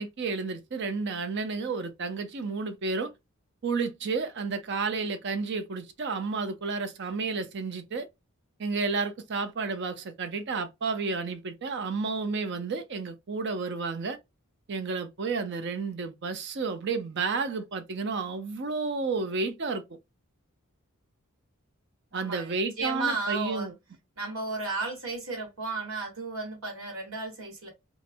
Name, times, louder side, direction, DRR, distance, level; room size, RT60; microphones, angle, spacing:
voice 1, 0.0-3.1 3.6-8.1 8.6-14.2 14.7-19.8 22.1-23.7, right 4 dB, 55° right, 0.5 m, -31 dB
voice 2, 22.1-23.7 24.2-27.7, right 3 dB, 70° right, 1.4 m, -34 dB
2.4 x 2.1 x 2.6 m
head